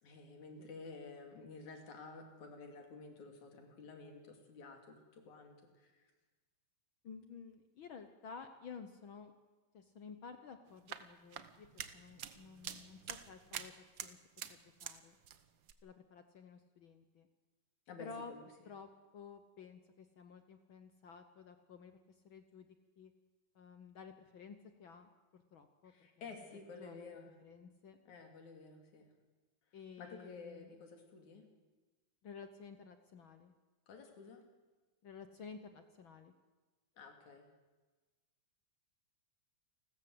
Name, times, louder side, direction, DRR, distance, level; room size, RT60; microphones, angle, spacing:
voice 1, 0.0-6.1 17.9-18.4 25.8-27.3 28.1-29.1 30.0-31.5 33.9-34.4 37.0-37.5, left 4 dB, 80° left, 4 dB, 4.2 m, -52 dB
voice 2, 7.0-9.3 9.7-13.7 14.0-14.2 14.5-15.2 15.8-17.3 18.0-18.3 18.6-23.1 23.5-26.1 26.8-28.0 29.7-30.7 32.2-33.5 35.0-36.3, left 5 dB, 60° left, 8 dB, 1.4 m, -53 dB
sound 1, 10.7-15.0 15.2-15.7, right 9 dB, 60° right, 1.3 m, -47 dB
29.0 x 13.5 x 7.9 m, 1.3 s
omnidirectional pair, 3.3 m